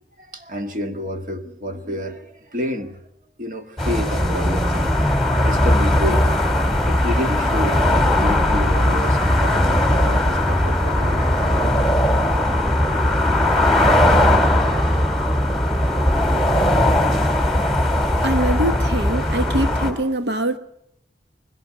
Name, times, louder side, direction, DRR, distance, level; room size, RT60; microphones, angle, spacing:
voice 1, 0.2-3.0 3.4-6.3 6.7-11.8, left 1 dB, 45° right, 1.9 m, -29 dB
sound 1, 3.8-19.9, left 1 dB, ahead, 2.9 m, -18 dB
voice 2, 18.2-20.6, right 1 dB, 75° right, 1.1 m, -23 dB
20.5 x 17.0 x 8.8 m
head